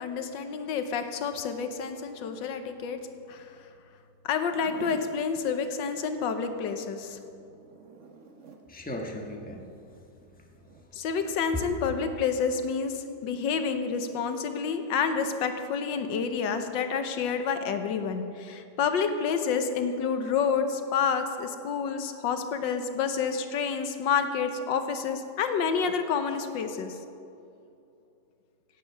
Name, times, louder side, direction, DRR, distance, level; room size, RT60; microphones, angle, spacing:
voice 1, 0.0-3.0 3.3-3.4 4.2-7.2 10.9-27.0, left 6 dB, 90° left, 8 dB, 1.6 m, -29 dB
Zipper (clothing), 4.5-5.2 7.3-8.7 10.5-10.8, right 6 dB, 50° right, 1.1 m, -47 dB
voice 2, 8.7-11.1 11.5-11.7, left 1 dB, 5° left, 0 dB, 1.1 m, -39 dB
17.0 x 8.3 x 6.0 m, 2.6 s
omnidirectional pair, 1.9 m